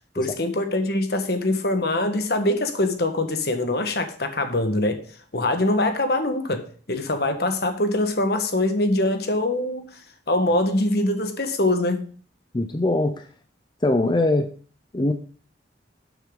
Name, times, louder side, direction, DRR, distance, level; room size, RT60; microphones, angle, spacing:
voice 1, 0.1-5.0 5.3-10.0 10.3-12.1, left 1 dB, 60° left, 1.4 m, -23 dB
voice 2, 12.5-13.2 13.8-14.5 14.9-15.1, left 2 dB, 25° left, 0.5 m, -21 dB
12.0 x 7.1 x 3.8 m
head